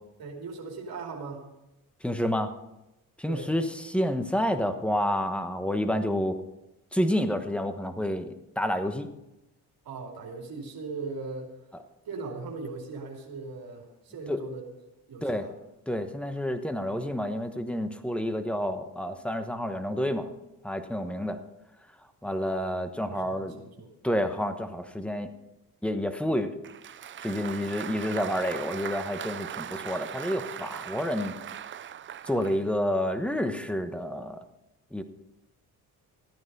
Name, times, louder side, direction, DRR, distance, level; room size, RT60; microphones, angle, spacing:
voice 1, 0.2-1.5 3.3-3.5 9.8-11.5 12.0-14.7 15.1-15.5 22.2-22.6 23.1-23.9 32.2-32.5, right 4 dB, 65° right, 0 dB, 2.8 m, -39 dB
voice 2, 2.0-2.5 3.2-6.4 6.9-9.1 14.3-14.4 15.2-15.5 15.9-20.3 20.6-21.4 22.2-23.5 24.0-25.3 25.8-26.5 27.2-31.4 32.2-34.4 34.9-35.0, equal, 5° left, 9 dB, 1.1 m, -29 dB
Applause, 26.6-32.7, right 9 dB, 30° right, 0.4 m, -39 dB
14.0 x 9.5 x 5.4 m, 0.94 s
cardioid pair, 95°, 39 cm